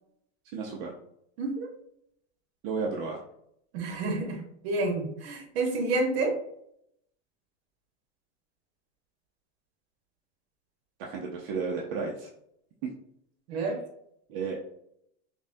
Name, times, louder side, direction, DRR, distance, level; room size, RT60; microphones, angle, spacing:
voice 1, 0.5-0.9 2.6-3.2 11.0-12.3 12.8-12.9 13.5-13.6 14.3-14.7, right 4 dB, 55° right, -1 dB, 0.8 m, -33 dB
voice 2, 1.4-1.7 3.7-6.3 13.5-13.8, right 2 dB, 75° right, 3 dB, 1.3 m, -29 dB
5.8 x 2.3 x 2.7 m, 0.73 s
supercardioid pair, 140°, 32 cm